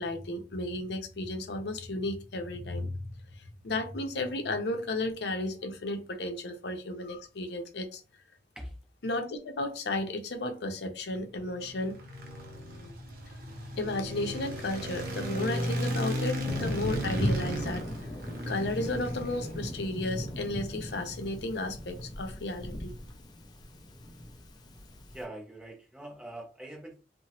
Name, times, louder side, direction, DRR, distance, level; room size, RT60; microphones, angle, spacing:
voice 1, 0.0-2.9 3.4-8.0 9.0-11.9 13.8-17.9 18.5-23.0, left 2 dB, 70° left, 0.6 m, -33 dB
sound 1, 11.4-19.8, equal, 55° right, 0.6 m, -36 dB
Thunder, 16.5-25.2, equal, 25° left, 0.3 m, -37 dB
voice 2, 25.1-27.0, right 1 dB, 5° right, 0.7 m, -43 dB
2.8 x 2.1 x 2.9 m
head